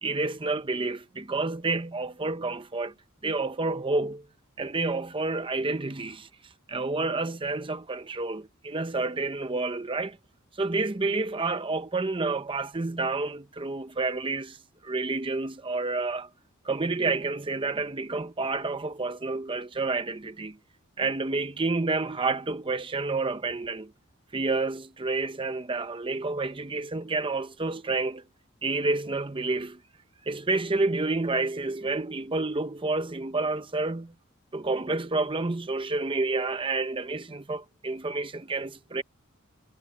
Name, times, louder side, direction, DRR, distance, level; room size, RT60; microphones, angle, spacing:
voice 1, 0.0-2.9 3.2-4.2 4.6-6.3 6.7-10.2 10.6-14.6 14.8-16.3 16.6-20.6 21.0-23.9 24.3-28.2 28.6-29.8 30.3-34.1 34.5-39.0, right 3 dB, 25° right, 0.7 m, -29 dB
head